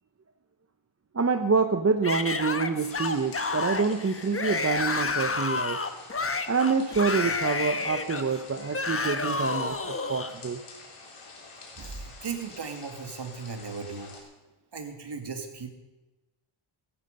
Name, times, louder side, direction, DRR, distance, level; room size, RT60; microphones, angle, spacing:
voice 1, 1.1-5.8 6.5-10.6, right 5 dB, 30° right, 8 dB, 0.8 m, -27 dB
Yell / Screaming, 2.0-10.3, left 4 dB, 25° left, 1.1 m, -30 dB
sound 1, 2.8-14.2, left 3 dB, 85° left, 3.6 m, -48 dB
voice 2, 11.8-14.3 14.7-15.7, right 5 dB, 55° right, 5 dB, 2.2 m, -37 dB
15.5 x 14.0 x 5.3 m, 1.1 s
wide cardioid pair, 90°, 50 cm